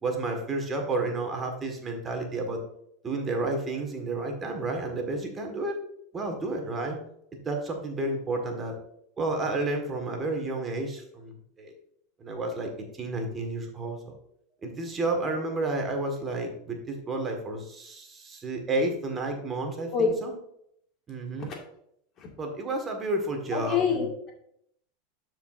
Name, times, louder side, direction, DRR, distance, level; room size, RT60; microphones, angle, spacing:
voice 1, 0.0-2.6 3.0-5.8 6.1-7.0 7.4-8.7 9.2-11.7 12.2-14.1 14.6-20.3 21.1-21.5 22.4-24.0, right 2 dB, 25° right, 3 dB, 1.7 m, -31 dB
voice 2, 23.5-24.3, left 5 dB, 40° left, 1 dB, 2.1 m, -27 dB
13.0 x 4.7 x 2.6 m, 0.71 s
hypercardioid pair, 90°, 0 cm